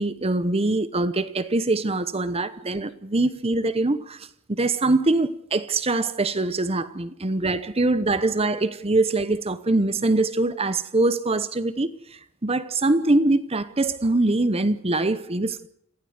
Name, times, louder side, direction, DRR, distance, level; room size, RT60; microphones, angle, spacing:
voice 1, 0.0-4.2 4.5-11.9 12.4-15.7, right 2 dB, 25° right, 0.9 m, -23 dB
26.5 x 15.5 x 8.0 m
head